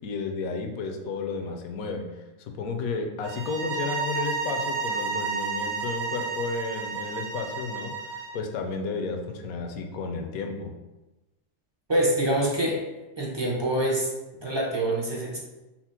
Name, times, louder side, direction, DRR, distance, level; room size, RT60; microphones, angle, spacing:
voice 1, 0.0-10.7, left 4 dB, 70° left, 4 dB, 1.0 m, -32 dB
sound 1, 3.2-8.4, right 5 dB, 70° right, 1.0 m, -31 dB
voice 2, 11.9-12.8 13.2-14.1 14.4-15.4, right 1 dB, 30° right, -3 dB, 0.5 m, -25 dB
5.8 x 2.1 x 4.2 m, 1.1 s
omnidirectional pair, 1.6 m